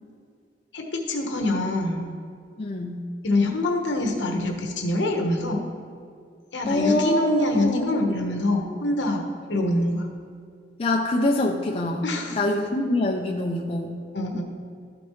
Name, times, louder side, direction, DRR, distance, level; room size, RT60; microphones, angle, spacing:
voice 1, 0.7-2.1 3.2-5.6 6.5-10.1 12.0-12.4 14.1-14.4, left 2 dB, 70° left, 2 dB, 1.1 m, -25 dB
voice 2, 2.6-3.0 6.6-7.9 10.8-12.0 12.3-14.0, left 1 dB, 30° left, 0 dB, 0.5 m, -24 dB
12.5 x 5.1 x 3.1 m, 2.2 s
head